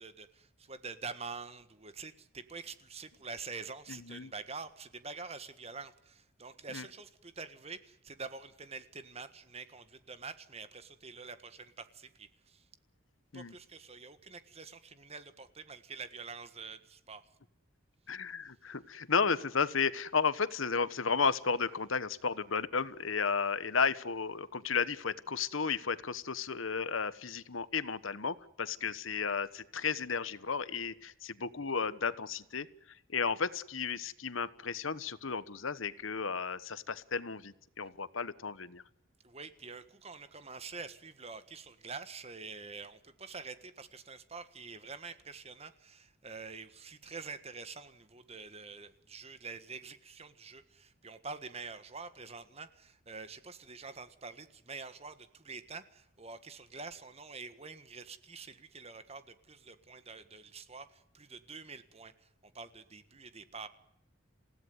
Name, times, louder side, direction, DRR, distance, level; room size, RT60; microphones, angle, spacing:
voice 1, 0.0-12.6 13.3-17.2 39.2-62.1 62.4-63.7, right 4 dB, 30° right, 12 dB, 1.6 m, -46 dB
voice 2, 3.9-4.3 6.7-6.8 13.3-13.5 18.1-32.7 33.1-38.8, left 5 dB, 85° left, 16 dB, 1.2 m, -33 dB
28.0 x 16.5 x 9.5 m, 0.80 s
head